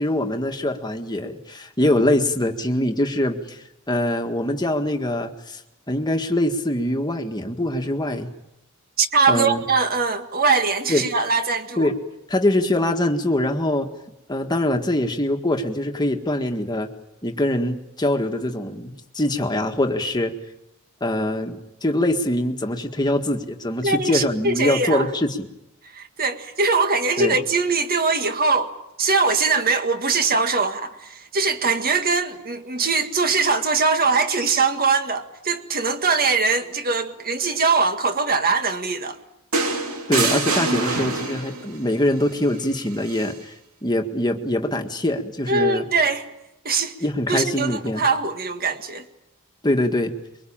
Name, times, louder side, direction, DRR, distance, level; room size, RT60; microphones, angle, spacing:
voice 1, 0.0-5.6 5.9-8.3 9.3-9.6 10.9-11.1 11.8-12.0 12.3-13.9 14.3-16.9 17.2-20.3 21.0-25.5 27.2-27.4 40.1-43.5 43.8-45.9 47.0-48.0 49.6-50.1, left 1 dB, 20° left, 1.8 m, -23 dB
voice 2, 9.0-11.9 23.8-25.1 25.9-28.7 29.0-39.2 45.5-46.3 46.7-46.9 47.3-49.1, right 4 dB, 45° right, 1.9 m, -22 dB
sound 1, 39.5-41.7 43.1-43.3, right 3 dB, 70° right, 2.9 m, -24 dB
24.0 x 23.5 x 8.9 m
head